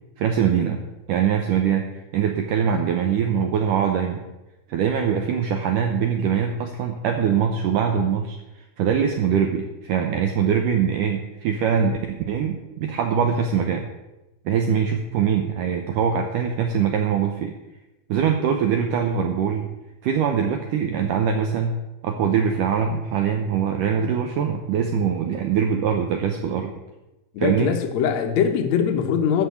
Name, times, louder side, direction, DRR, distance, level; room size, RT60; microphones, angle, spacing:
voice 1, 0.2-0.8 1.1-4.2 4.7-13.9 14.5-17.5 18.1-19.7 20.0-26.7 27.4-27.7, right 7 dB, 85° right, 1.8 m, -23 dB
voice 2, 27.3-29.5, left 7 dB, 80° left, 1.5 m, -22 dB
13.0 x 5.2 x 8.2 m
omnidirectional pair, 4.8 m